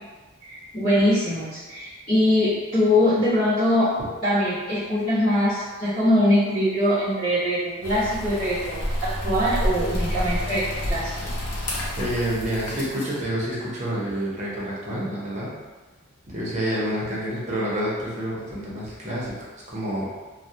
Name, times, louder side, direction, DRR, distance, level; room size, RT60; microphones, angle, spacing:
voice 1, 0.4-3.9 4.2-11.3, left 1 dB, 40° left, -16 dB, 0.9 m, -22 dB
sound 1, 7.8-13.2, equal, 75° left, 0.6 m, -29 dB
voice 2, 12.0-15.5 16.3-20.0, equal, 35° right, -6 dB, 0.6 m, -28 dB
2.2 x 2.1 x 2.7 m, 1.3 s
head